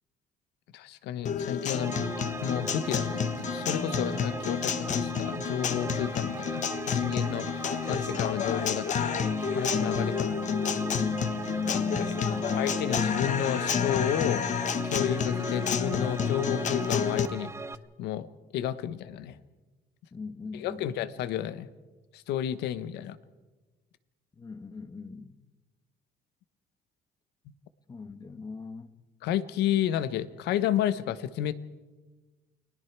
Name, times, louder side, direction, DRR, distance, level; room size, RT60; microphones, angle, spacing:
voice 1, 0.7-2.0 2.4-9.2 9.5-10.5 12.6-14.5 14.7-17.5 18.0-19.4 20.6-21.7 22.1-23.2 29.2-31.5, left 10 dB, 85° left, 1.1 m, -31 dB
Guitar, 1.2-17.3, left 7 dB, 45° left, 1.3 m, -30 dB
sound 1, 1.8-17.7, right 3 dB, 15° right, 0.8 m, -38 dB
voice 2, 11.6-12.7 20.1-21.0 24.4-25.3 27.9-28.9, left 4 dB, 25° left, 1.3 m, -42 dB
29.0 x 20.5 x 4.7 m
cardioid pair, 110°, 17 cm